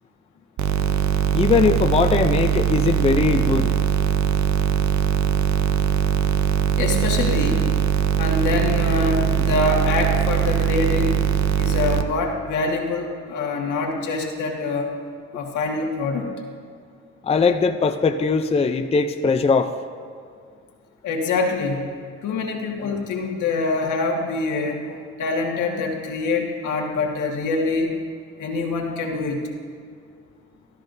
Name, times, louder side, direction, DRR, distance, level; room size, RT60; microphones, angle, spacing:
sound 1, 0.6-12.0, right 9 dB, 65° right, 0.7 m, -21 dB
voice 1, 1.3-3.7 17.2-19.7, left 4 dB, 20° left, 6 dB, 0.5 m, -20 dB
voice 2, 6.8-7.7 8.2-11.2 11.6-14.9 15.3-16.3 21.0-21.9 22.2-27.9 28.4-29.4, left 3 dB, 80° left, 0 dB, 1.7 m, -25 dB
13.5 x 13.0 x 2.7 m, 2.2 s
cardioid pair, 90°, 30 cm